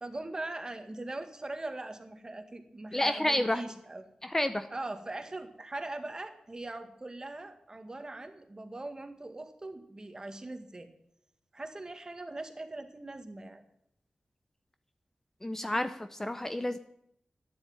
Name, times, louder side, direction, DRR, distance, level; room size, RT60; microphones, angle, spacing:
voice 1, 0.0-4.0 4.7-10.9 11.5-13.7, right 2 dB, 30° right, 7 dB, 1.8 m, -41 dB
voice 2, 2.9-3.6 4.2-4.7 15.4-16.8, left 1 dB, 15° left, 9 dB, 0.7 m, -30 dB
12.0 x 10.0 x 8.9 m, 0.75 s
wide cardioid pair, 100°, 2 cm